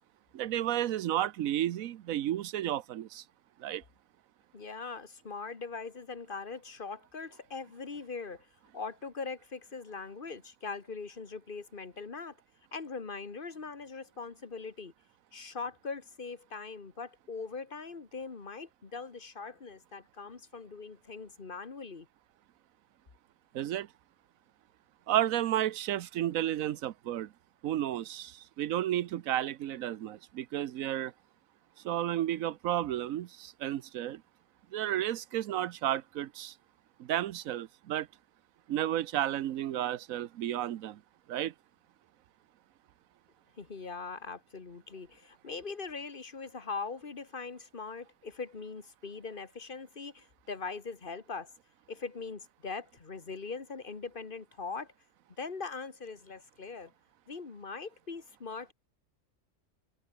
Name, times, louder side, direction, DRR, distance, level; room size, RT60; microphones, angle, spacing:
voice 1, 0.3-3.2 3.6-3.8 23.5-23.9 25.1-27.3 27.6-31.1 31.8-34.2 34.7-36.5 37.0-38.1 38.7-41.0 41.3-41.5, right 12 dB, 80° right, 1.1 m, -32 dB
voice 2, 4.5-8.5 8.7-12.4 12.7-14.9 15.3-22.1 43.6-51.5 51.9-54.9 55.4-56.9 57.3-58.7, left 4 dB, 40° left, 1.8 m, -41 dB
omnidirectional pair, 1.4 m